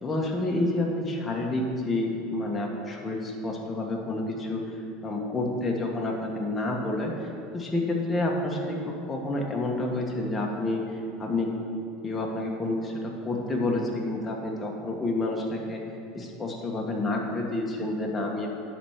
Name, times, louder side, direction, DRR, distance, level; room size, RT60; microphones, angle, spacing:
voice 1, 0.0-4.6 5.0-7.1 7.5-8.8 9.1-11.5 12.0-15.8 16.1-18.5, left 2 dB, 15° left, -1 dB, 1.4 m, -29 dB
10.5 x 4.5 x 6.5 m, 2.7 s
supercardioid pair, 130°, 0 cm